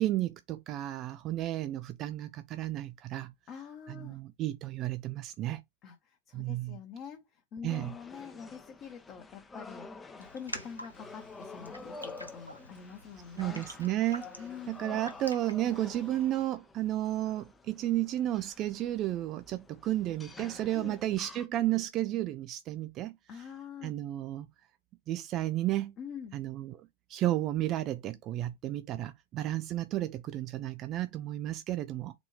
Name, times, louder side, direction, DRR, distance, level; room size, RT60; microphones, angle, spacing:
voice 1, 0.0-3.3 3.9-5.6 6.3-6.8 7.6-7.9 13.4-23.4 23.8-24.5 25.1-25.9 26.3-32.1, right 14 dB, 35° right, 0.3 m, -33 dB
voice 2, 3.5-4.2 5.8-13.6 14.4-15.0 20.7-21.0 23.3-23.9 26.0-26.4, left 7 dB, 35° left, 1.0 m, -46 dB
sound 1, 7.7-21.5, left 3 dB, 15° left, 0.6 m, -49 dB
Raindrop, 10.2-16.4, equal, 90° left, 0.7 m, -48 dB
4.1 x 2.7 x 3.2 m
figure-of-eight pair, 90°, 0 cm